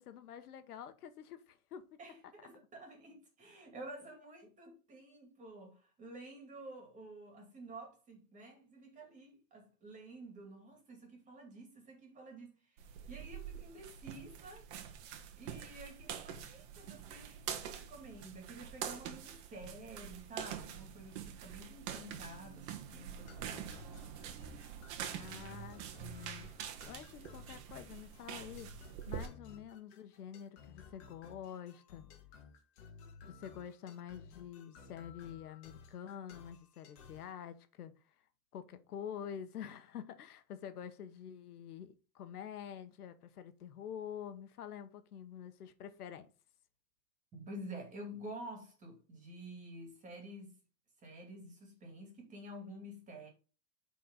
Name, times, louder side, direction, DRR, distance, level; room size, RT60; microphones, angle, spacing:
voice 1, 0.0-1.8 25.2-26.5 26.9-28.7 29.1-32.0 33.3-37.9 38.5-46.3, left 9 dB, 90° left, 1.2 m, -47 dB
voice 2, 2.0-14.7 15.4-23.7 47.3-50.6 51.0-53.3, right 1 dB, 15° right, 2.6 m, -50 dB
sound 1, 12.8-29.3, right 9 dB, 45° right, 1.4 m, -46 dB
sound 2, 23.3-37.3, left 5 dB, 45° left, 2.0 m, -57 dB
9.1 x 4.2 x 4.0 m
supercardioid pair, 150°, 44 cm